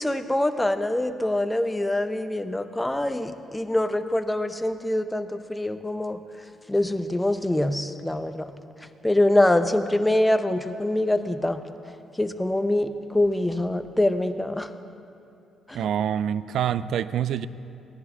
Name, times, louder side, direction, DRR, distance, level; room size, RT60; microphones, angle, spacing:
voice 1, 0.0-6.2 6.7-8.5 9.0-11.6 12.2-14.7 15.7-15.8, left 1 dB, 10° left, 10 dB, 0.6 m, -24 dB
voice 2, 15.7-17.5, right 9 dB, 70° right, 16 dB, 0.3 m, -26 dB
16.5 x 10.5 x 3.6 m, 2.7 s
cardioid pair, 90°, 0 cm